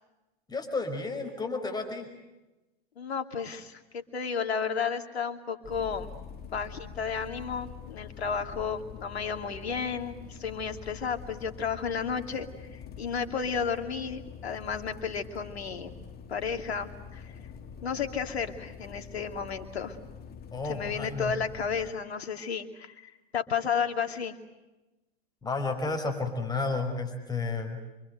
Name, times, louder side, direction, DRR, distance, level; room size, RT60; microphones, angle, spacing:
voice 1, 0.5-2.1 20.5-21.3 25.4-27.8, left 3 dB, 15° left, 4 dB, 5.4 m, -32 dB
voice 2, 3.0-6.1 6.5-15.9 16.3-17.4 17.8-20.0 20.6-24.4, left 6 dB, 80° left, 6 dB, 2.8 m, -33 dB
sound 1, 5.6-21.9, left 6 dB, 30° left, 2.1 m, -45 dB
27.5 x 24.5 x 7.9 m, 1.0 s
hypercardioid pair, 105°, 31 cm